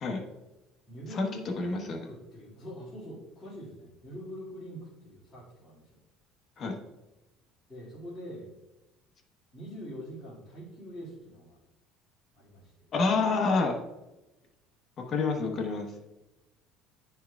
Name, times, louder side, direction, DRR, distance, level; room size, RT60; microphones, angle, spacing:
voice 1, 0.9-5.8 7.7-8.5 9.5-11.6 12.3-12.7, equal, 15° left, -10 dB, 2.2 m, -44 dB
voice 2, 1.6-2.0 6.6-6.7 12.9-13.8 15.1-15.8, left 4 dB, 35° left, 2 dB, 1.0 m, -27 dB
11.0 x 4.5 x 2.3 m, 1.0 s
cardioid pair, 150°, 0 cm